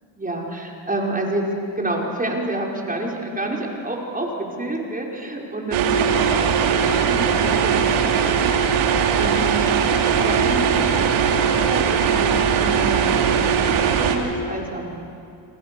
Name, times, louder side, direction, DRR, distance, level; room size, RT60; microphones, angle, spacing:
voice 1, 0.2-1.5 1.8-4.3 4.6-8.8 9.1-9.6 10.2-15.0, right 1 dB, 15° right, -1 dB, 5.2 m, -29 dB
sound 1, 5.7-14.2, right 7 dB, 80° right, 2.8 m, -19 dB
28.5 x 26.0 x 7.0 m, 2.6 s
supercardioid pair, 80°, 48 cm